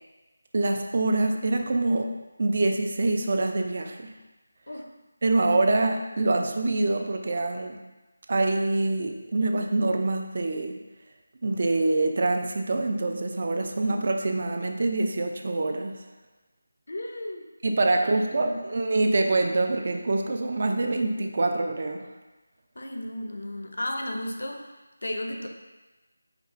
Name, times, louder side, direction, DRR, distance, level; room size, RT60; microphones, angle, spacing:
voice 1, 0.5-2.1 2.4-4.1 5.2-7.8 8.3-10.8 11.4-15.9 17.6-22.0, right 2 dB, 45° right, 4 dB, 0.4 m, -25 dB
voice 2, 16.9-17.5 18.0-18.6 22.8-24.7 25.0-25.5, left 1 dB, 75° left, 3 dB, 0.5 m, -34 dB
4.6 x 2.4 x 3.6 m, 1.1 s
figure-of-eight pair, 170°, 0 cm